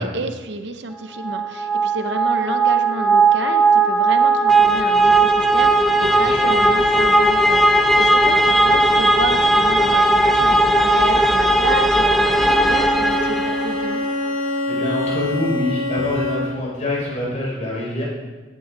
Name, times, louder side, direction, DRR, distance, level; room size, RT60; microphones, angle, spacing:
voice 1, 0.0-14.1, right 2 dB, 60° right, 8 dB, 0.8 m, -30 dB
sound 1, 1.2-14.0, right 2 dB, ahead, 0.6 m, -17 dB
voice 2, 6.1-6.5 14.7-18.0, left 1 dB, 35° left, -4 dB, 5.0 m, -25 dB
Bowed string instrument, 12.3-16.8, left 1 dB, 90° left, 1.3 m, -25 dB
16.5 x 11.5 x 3.9 m, 1.2 s
head